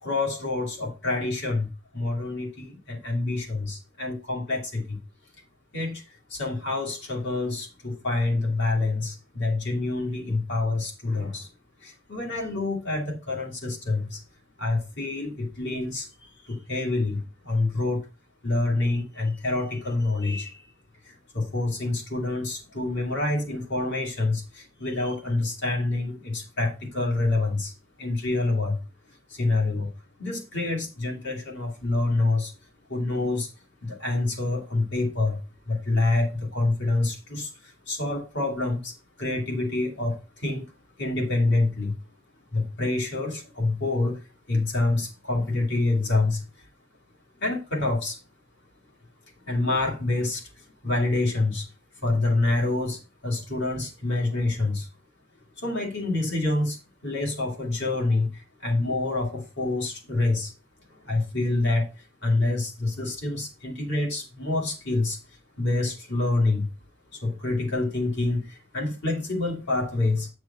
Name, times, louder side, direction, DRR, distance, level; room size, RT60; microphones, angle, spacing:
voice 1, 0.0-5.0 5.7-6.0 6.3-11.5 11.8-14.2 14.6-18.1 18.4-20.6 21.0-27.7 28.0-28.8 29.3-29.9 30.2-32.5 32.9-33.5 33.8-40.7 41.0-42.0 42.5-44.2 44.5-46.5 47.4-48.2 49.5-50.5 50.8-51.7 52.0-54.9 55.6-60.5 61.0-61.9 62.2-65.2 65.6-66.7 67.1-70.3, left 2 dB, 55° left, 2.2 m, -27 dB
8.5 x 4.8 x 4.1 m
head